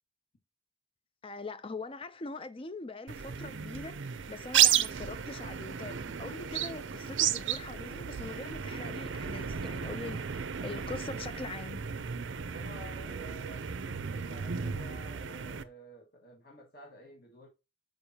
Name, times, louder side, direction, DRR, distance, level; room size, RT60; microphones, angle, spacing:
voice 1, 1.2-11.8, left 3 dB, 25° left, 0.4 m, -42 dB
sound 1, 3.1-15.6, right 9 dB, 60° right, 0.5 m, -33 dB
voice 2, 12.4-17.5, right 1 dB, 50° left, 1.6 m, -51 dB
6.7 x 5.2 x 2.8 m
head